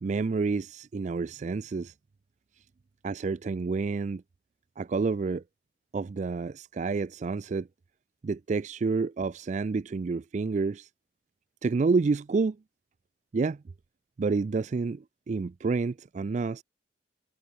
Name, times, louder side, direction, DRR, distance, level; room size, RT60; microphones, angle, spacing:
voice 1, 0.0-1.9 3.0-4.2 4.8-5.4 5.9-7.7 8.2-10.9 11.6-12.6 13.3-13.6 14.2-16.6, right 4 dB, 40° right, 0.3 m, -29 dB
head